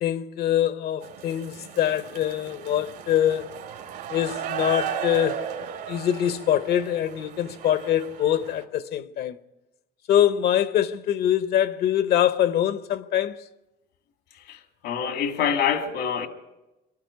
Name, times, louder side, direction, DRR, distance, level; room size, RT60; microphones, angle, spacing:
voice 1, 0.0-3.7 4.1-9.4 10.1-13.5, left 11 dB, 70° left, 0.9 m, -24 dB
sound 1, 1.0-8.6, right 8 dB, 85° right, 2.5 m, -35 dB
voice 2, 14.5-16.3, left 7 dB, 85° left, 2.1 m, -26 dB
23.0 x 13.0 x 9.5 m
cardioid pair, 110°, 17 cm